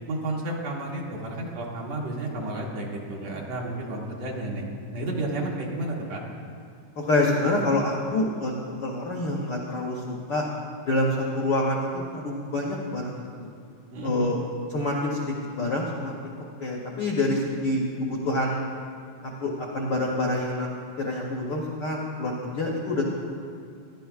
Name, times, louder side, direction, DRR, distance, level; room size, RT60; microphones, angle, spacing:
voice 1, 0.1-4.6 4.9-6.2 13.9-14.3, right 2 dB, 65° right, -2 dB, 2.3 m, -31 dB
voice 2, 6.9-8.5 8.8-10.4 10.8-13.2 14.0-14.4 14.7-16.1 16.6-18.6 19.4-20.7 21.0-23.0, left 2 dB, 70° left, -2 dB, 1.0 m, -27 dB
16.5 x 12.0 x 2.3 m, 2.3 s
omnidirectional pair, 3.4 m